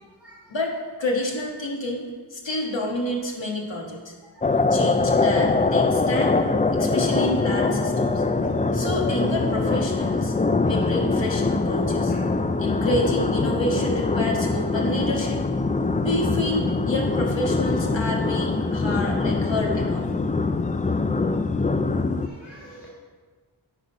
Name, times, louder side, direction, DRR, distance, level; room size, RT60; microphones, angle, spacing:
voice 1, 0.5-4.1 4.7-6.4 6.7-8.2 8.7-10.3 10.6-12.1 12.6-15.4 16.0-20.1, left 1 dB, 65° left, 0 dB, 1.6 m, -29 dB
sound 1, 4.4-22.3, left 3 dB, 20° left, 0.3 m, -23 dB
voice 2, 22.2-22.9, right 1 dB, 5° right, -7 dB, 1.9 m, -46 dB
10.0 x 4.1 x 5.3 m, 1.4 s
wide cardioid pair, 50°, 47 cm